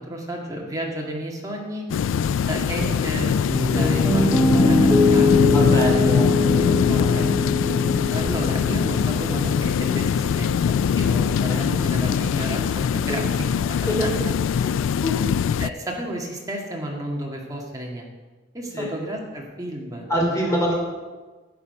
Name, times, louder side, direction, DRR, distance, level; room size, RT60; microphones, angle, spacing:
voice 1, 0.0-1.9 2.5-5.3 6.9-7.4 8.1-10.5 10.9-13.3 13.6-14.1 14.9-15.0 15.6-18.1 18.5-20.4, right 1 dB, 20° right, -1 dB, 1.9 m, -32 dB
sound 1, 1.9-15.7, left 7 dB, 75° left, 0.3 m, -22 dB
Piano, 3.5-11.6, left 2 dB, ahead, 0.7 m, -23 dB
voice 2, 5.5-7.3 11.5-11.7 13.1-13.2 13.9-14.1 14.6-14.7 15.0-15.3 18.7-18.9 20.1-20.7, equal, 15° left, -2 dB, 2.9 m, -26 dB
11.5 x 8.5 x 5.4 m, 1.3 s
head